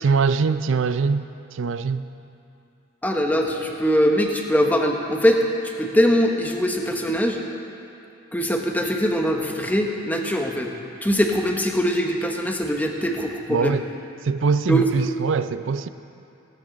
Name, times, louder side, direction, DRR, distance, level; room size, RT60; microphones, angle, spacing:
voice 1, 0.0-2.0 13.5-13.9 14.2-15.9, right 5 dB, 90° right, 13 dB, 0.5 m, -22 dB
voice 2, 3.0-5.5 5.8-7.4 8.3-10.7 11.0-13.8 14.7-14.9, equal, 10° left, 2 dB, 1.0 m, -22 dB
16.5 x 13.5 x 3.9 m, 2.7 s
head